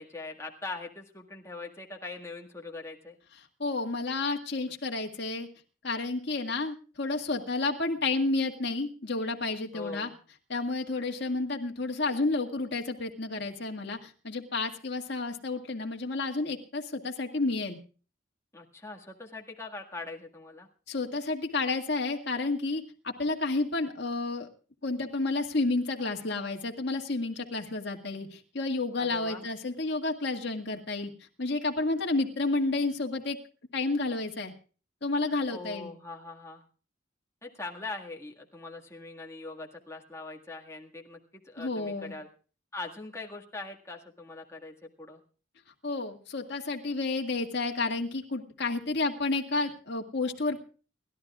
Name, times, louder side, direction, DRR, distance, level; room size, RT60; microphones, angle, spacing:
voice 1, 0.0-3.2 9.7-10.2 18.5-20.7 29.0-29.5 35.5-36.6 37.4-42.3 42.7-45.2, left 3 dB, 15° left, 0 dB, 1.8 m, -42 dB
voice 2, 3.6-5.5 5.8-10.1 10.5-17.8 20.9-24.5 24.8-31.1 31.4-33.4 33.7-34.5 35.0-35.9 41.6-42.1 45.8-50.6, left 3 dB, 60° left, 2 dB, 2.0 m, -31 dB
30.0 x 12.5 x 2.4 m, 0.38 s
head